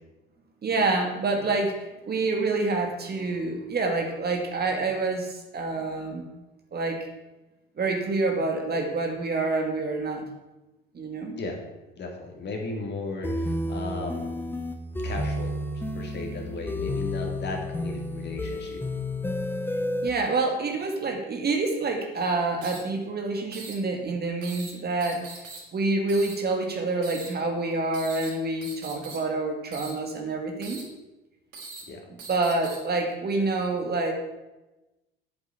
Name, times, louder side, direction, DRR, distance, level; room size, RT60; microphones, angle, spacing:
voice 1, 0.6-1.8 2.1-6.2 6.7-7.0 7.8-10.2 10.9-11.4 20.0-25.3 25.7-30.8 32.3-34.1, right 3 dB, 35° right, 3 dB, 2.4 m, -27 dB
voice 2, 12.0-14.3 15.0-18.8 31.9-32.0, left 3 dB, 35° left, 1 dB, 3.4 m, -36 dB
sound 1, 13.2-20.1, left 1 dB, 5° left, 1.4 m, -31 dB
sound 2, 20.8-20.9 22.6-22.8 23.5-23.7 24.4-24.7 25.0-25.6 26.1-26.3 27.0-27.3 27.9-28.3 28.6-29.2 29.7-29.9 30.6-30.8 31.5-31.8 32.2-32.8, right 4 dB, 55° right, 5.3 m, -41 dB
9.1 x 8.0 x 8.5 m, 1.0 s
hypercardioid pair, 65°, 29 cm